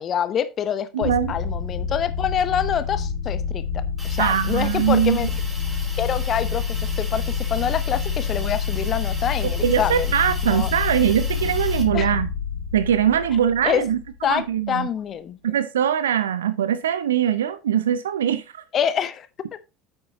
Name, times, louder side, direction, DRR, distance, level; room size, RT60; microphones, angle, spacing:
voice 1, 0.0-5.3 6.0-10.1 10.5-10.7 11.9-12.1 13.6-13.8 14.2-15.4 18.7-19.3, left 8 dB, 40° left, 1.0 m, -26 dB
voice 2, 0.9-1.3 4.2-5.3 9.4-12.3 12.7-14.0 14.2-14.9 15.4-18.6, right 9 dB, 75° right, 0.5 m, -22 dB
sound 1, 1.0-14.3, left 6 dB, 75° left, 2.1 m, -27 dB
Hiss, 4.0-11.8, right 1 dB, 15° right, 4.8 m, -39 dB
9.6 x 7.5 x 2.9 m
figure-of-eight pair, 65°, 0 cm